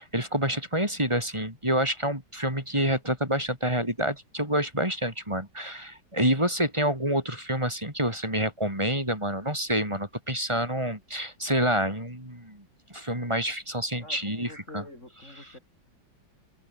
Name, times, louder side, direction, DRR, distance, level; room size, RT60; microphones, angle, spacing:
voice 1, 0.0-12.6 12.9-14.8 15.4-15.5, right 1 dB, 15° right, 6.3 m, -28 dB
voice 2, 14.0-15.6, left 2 dB, 35° left, 6.8 m, -46 dB
omnidirectional pair, 2.2 m